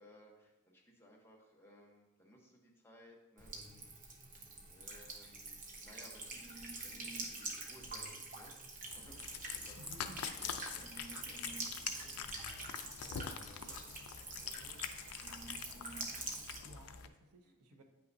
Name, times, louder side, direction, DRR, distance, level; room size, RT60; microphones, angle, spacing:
voice 1, 0.0-3.8 4.5-6.4 6.8-8.6 8.9-9.2 9.5-9.8 10.4-12.2 13.1-13.8 14.4-14.8 17.4-17.8, equal, 10° left, -1 dB, 1.0 m, -61 dB
Buzz / Water tap faucet / Trickle dribble, 3.4-16.6, right 3 dB, 40° right, 1.0 m, -46 dB
Cat, 8.9-17.1, left 8 dB, 75° left, 0.5 m, -45 dB
voice 2, 9.8-10.4 13.7-13.8 16.6-17.8, equal, 80° right, 5 dB, 0.7 m, -56 dB
8.7 x 5.6 x 2.7 m, 1.0 s
head